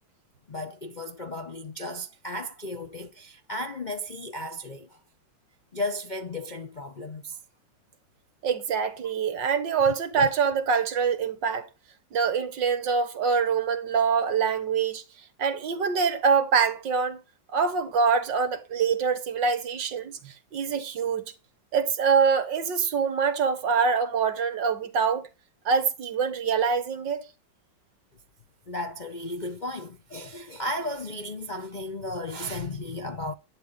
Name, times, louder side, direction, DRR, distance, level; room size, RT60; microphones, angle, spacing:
voice 1, 0.5-4.9 5.7-7.4 28.7-33.3, left 1 dB, 40° left, 0.6 m, -34 dB
voice 2, 8.4-11.7 12.1-15.0 15.4-17.2 17.5-21.3 21.7-25.3 25.7-27.2, right 5 dB, 65° right, 2.0 m, -25 dB
11.5 x 9.0 x 3.9 m
omnidirectional pair, 2.1 m